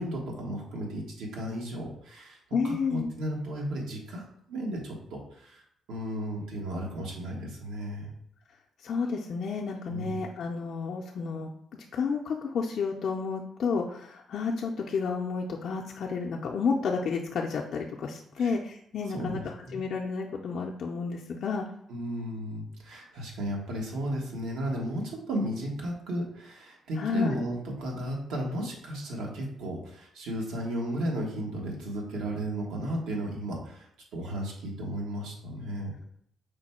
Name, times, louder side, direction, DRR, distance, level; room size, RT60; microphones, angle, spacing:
voice 1, 0.0-2.4 2.6-5.6 5.9-8.1 9.9-10.2 18.4-18.5 19.1-19.8 21.9-35.9, right 1 dB, 90° right, -1 dB, 1.2 m, -34 dB
voice 2, 2.5-3.1 8.8-11.5 11.9-19.4 19.7-21.6 27.0-27.4, left 5 dB, 60° left, -1 dB, 0.5 m, -31 dB
5.1 x 2.2 x 4.2 m, 0.68 s
cardioid pair, 90°, 0 cm